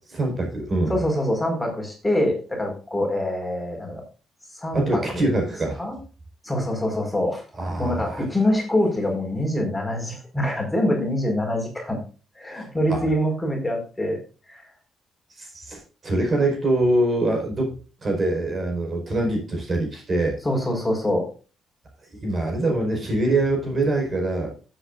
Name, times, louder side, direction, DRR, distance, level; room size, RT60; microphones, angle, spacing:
voice 1, 0.1-1.0 4.7-5.8 7.6-8.2 12.5-13.0 15.4-17.8 18.0-20.4 22.2-24.5, right 2 dB, 35° right, 1 dB, 4.7 m, -24 dB
voice 2, 0.9-4.0 4.6-5.3 5.8-6.0 6.4-7.4 7.8-12.0 12.4-14.2 14.5-14.6 20.4-21.3, left 1 dB, 10° left, 1 dB, 4.6 m, -24 dB
15.0 x 8.1 x 2.5 m, 0.35 s
cardioid pair, 90°, 0 cm